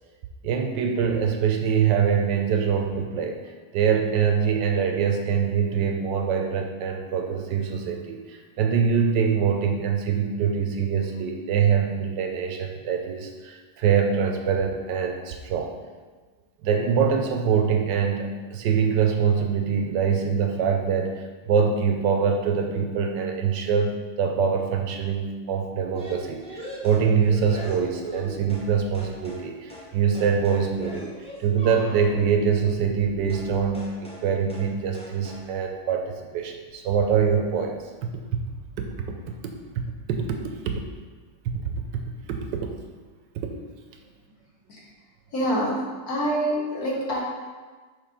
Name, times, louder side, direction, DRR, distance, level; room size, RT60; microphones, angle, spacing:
voice 1, 0.4-3.4 3.7-15.7 16.6-31.1 31.4-38.1 38.8-39.8 40.1-40.8 41.4-41.7 42.3-42.7 43.3-43.5, right 6 dB, 75° right, 4 dB, 1.2 m, -24 dB
sound 1, 25.9-28.7 28.9-29.4 29.7-29.9 30.1-32.2 33.3-33.5 33.7-34.2 34.5-34.7 34.9-35.4, right 1 dB, 10° left, 0.3 m, -39 dB
voice 2, 45.3-45.7 46.1-47.2, equal, 55° left, -3 dB, 1.5 m, -25 dB
6.5 x 3.2 x 4.9 m, 1.4 s
omnidirectional pair, 2.0 m